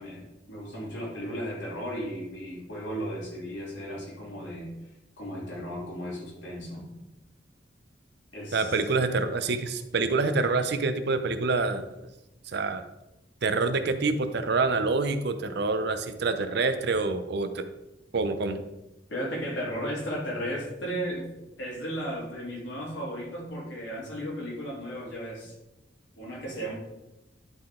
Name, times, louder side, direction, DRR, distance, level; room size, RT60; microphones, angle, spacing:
voice 1, 0.0-4.7 5.2-6.9 8.3-8.8 19.1-21.3 21.6-25.6 26.2-26.7, equal, 80° left, -4 dB, 2.6 m, -35 dB
voice 2, 8.5-11.8 12.5-12.8 13.4-17.6 18.1-18.6, right 3 dB, 65° right, 9 dB, 0.6 m, -26 dB
11.0 x 3.9 x 3.7 m, 0.97 s
head